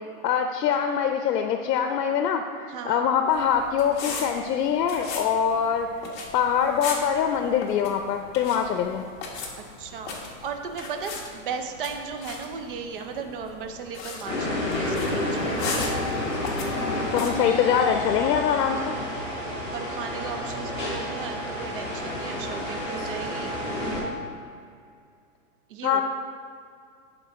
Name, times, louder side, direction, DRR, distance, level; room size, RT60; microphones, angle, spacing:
voice 1, 0.2-5.9 6.3-9.1 17.1-19.0 25.8-26.0, left 8 dB, 85° left, 6 dB, 0.7 m, -24 dB
voice 2, 2.7-3.1 9.6-15.6 18.6-19.1 19.7-23.5 25.7-26.0, right 6 dB, 35° right, 5 dB, 0.5 m, -36 dB
sound 1, 3.3-17.3, left 4 dB, 30° left, 1.0 m, -38 dB
sound 2, 14.3-24.0, left 1 dB, 10° left, 1.6 m, -30 dB
9.9 x 3.9 x 4.6 m, 2.3 s
hypercardioid pair, 160°, 48 cm